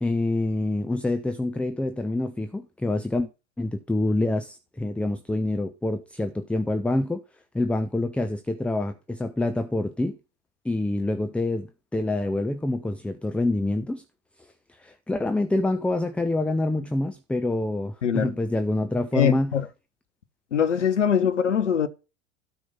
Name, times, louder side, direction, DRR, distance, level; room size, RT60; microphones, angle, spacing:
voice 1, 0.0-3.3 3.6-7.2 7.5-10.2 10.6-14.0 14.4-19.5 21.2-21.3, left 2 dB, 5° left, 0.7 m, -26 dB
voice 2, 19.1-19.6 20.5-21.9, left 8 dB, 75° left, 1.2 m, -22 dB
12.5 x 4.9 x 5.5 m
figure-of-eight pair, 85°, 37 cm